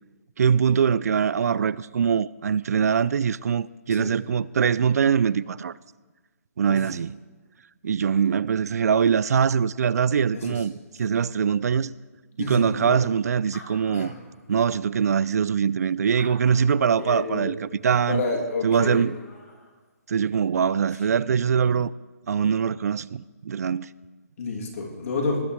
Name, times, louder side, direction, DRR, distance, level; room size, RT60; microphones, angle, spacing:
voice 1, 0.4-5.7 6.6-7.1 7.8-10.7 11.0-11.9 12.4-14.1 14.5-18.2 18.6-19.2 20.1-21.9 22.3-23.9, right 7 dB, 75° right, 0.3 m, -23 dB
voice 2, 12.4-13.0 13.9-14.1 17.0-17.5 18.1-19.1 24.4-25.4, left 3 dB, 60° left, 2.8 m, -29 dB
Animal, 13.1-13.2 13.3-14.8 15.4-15.5 16.0-17.0 18.5-18.6 18.8-19.7, left 2 dB, 80° left, 2.6 m, -47 dB
19.0 x 8.7 x 3.2 m
hypercardioid pair, 155°, 9 cm